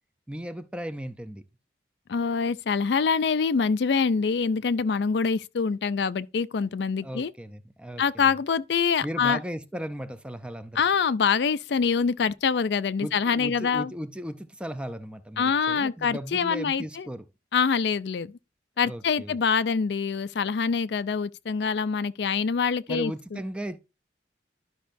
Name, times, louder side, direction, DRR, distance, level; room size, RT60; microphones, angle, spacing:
voice 1, 0.3-1.4 7.0-8.3 9.0-10.8 13.0-17.3 18.8-19.4 22.9-23.8, equal, 5° right, 0.5 m, -36 dB
voice 2, 2.1-7.3 8.0-9.4 10.8-13.9 15.4-17.1 17.5-18.3 18.8-23.4, left 5 dB, 70° left, 0.4 m, -25 dB
12.0 x 5.5 x 2.6 m
head